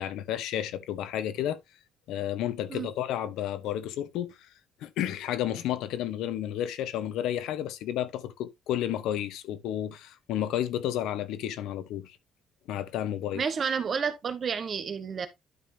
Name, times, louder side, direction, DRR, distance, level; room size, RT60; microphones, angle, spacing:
voice 1, 0.0-1.6 2.1-4.4 4.8-12.2 12.7-13.4, left 11 dB, 80° left, 1.0 m, -31 dB
voice 2, 13.3-15.3, right 6 dB, 30° right, 1.2 m, -30 dB
12.0 x 5.3 x 2.7 m
cardioid pair, 175°, 0 cm